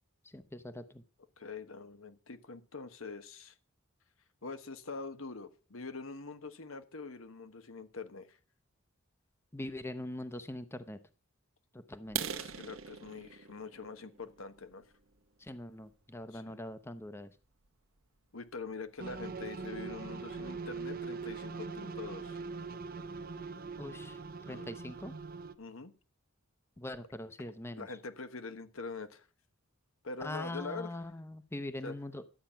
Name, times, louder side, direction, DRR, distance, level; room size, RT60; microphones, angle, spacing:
voice 1, 0.2-1.0 9.5-11.0 11.7-12.2 15.4-17.3 23.8-25.1 26.8-27.9 30.2-32.2, left 1 dB, 10° left, 0.7 m, -42 dB
voice 2, 1.4-3.5 4.4-8.4 12.2-14.8 16.3-16.6 18.3-22.4 24.5-24.7 25.6-25.9 27.8-29.3 30.0-31.0 31.8-32.0, left 4 dB, 80° left, 1.2 m, -44 dB
sound 1, 12.0-15.8 16.3-16.5 17.0-17.1 17.5-17.7 18.0-18.1 18.5-18.6 18.9-19.4, right 8 dB, 80° right, 1.1 m, -42 dB
sound 2, 19.0-25.5, right 4 dB, 45° right, 0.8 m, -42 dB
12.5 x 8.9 x 5.7 m
head